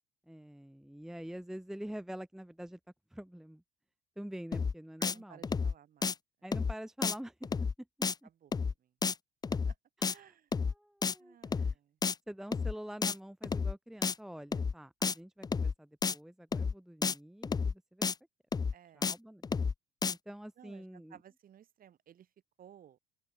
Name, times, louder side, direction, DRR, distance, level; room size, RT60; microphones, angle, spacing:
voice 1, 0.3-2.8 3.1-3.6 4.2-5.4 6.4-7.5 8.2-8.3 10.0-10.4 10.6-11.8 12.3-18.1 18.9-19.5 20.3-21.2, equal, ahead, 0.9 m, -46 dB
sound 1, 4.5-4.7 5.0-5.1 5.4-5.7 6.0-6.1 6.5-6.7 7.0-7.1 7.4-7.7 8.0-8.1 8.5-8.7 9.0-9.1 9.4-9.7 10.0-10.1 10.5-10.7 11.0-11.1 11.4-11.7 12.0-12.1 12.5-12.7 13.0-13.1 13.4-13.7 14.0-14.1 14.5-14.7 15.0-15.1 15.4-15.7 16.0-16.1 16.5-16.7 17.0-17.1 17.4-17.7 18.0-18.1 18.5-18.7 19.0-19.1 19.4-19.7 20.0-20.1, left 5 dB, 20° left, 0.6 m, -31 dB
voice 2, 5.0-6.1 8.0-8.5 8.8-8.9 9.5-9.8 10.0-10.5 11.2-12.0 18.7-19.1 20.6-22.3 22.6-23.0, right 10 dB, 45° right, 7.5 m, -57 dB
open air
cardioid pair, 105°, 20 cm